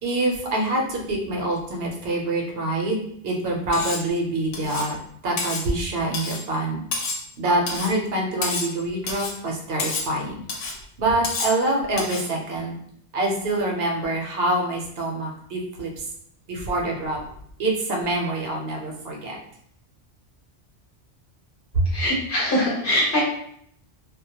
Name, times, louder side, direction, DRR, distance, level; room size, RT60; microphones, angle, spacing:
voice 1, 0.0-5.0 5.2-6.8 7.4-10.4 11.0-12.8 13.1-16.1 16.5-17.2 17.6-19.4 21.7-21.9, right 2 dB, 65° right, -1 dB, 0.7 m, -25 dB
Cutlery silverware, 3.7-4.1 4.5-4.9 5.4-5.7 6.1-6.5 6.9-7.3 7.7-7.9 8.4-8.8 9.1-9.4 9.8-10.1 10.5-10.8 11.2-11.6 12.0-12.3, left 3 dB, 90° left, 0.9 m, -29 dB
voice 2, 21.9-23.2, left 1 dB, 55° left, -4 dB, 0.8 m, -22 dB
2.2 x 2.1 x 2.8 m, 0.68 s
omnidirectional pair, 1.2 m